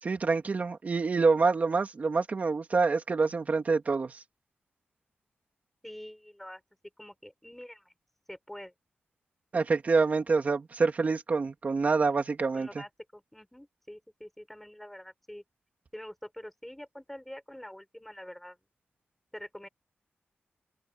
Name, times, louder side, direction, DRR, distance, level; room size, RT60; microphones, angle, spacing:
voice 1, 0.0-4.2 9.5-12.8, right 4 dB, 45° right, 2.6 m, -26 dB
voice 2, 1.2-1.5 5.8-6.6 7.0-7.9 8.3-8.7 12.5-15.4 15.9-18.6 19.3-19.7, equal, 5° left, 7.3 m, -46 dB
wide cardioid pair, 110°, 4 cm